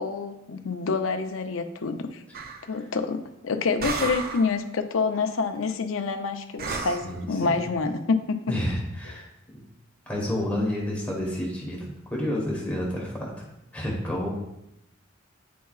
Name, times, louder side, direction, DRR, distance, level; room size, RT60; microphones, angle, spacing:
voice 1, 0.0-2.2 2.7-8.6, left 4 dB, 80° left, 6 dB, 0.6 m, -27 dB
sound 1, 2.3-2.7 3.8-4.6 6.6-7.1, right 5 dB, 45° right, 0.5 m, -32 dB
voice 2, 6.7-7.6 8.5-9.3 9.5-9.6 10.1-13.3 13.7-14.3, left 1 dB, 5° left, -3 dB, 1.2 m, -30 dB
9.2 x 4.6 x 2.4 m, 0.86 s
head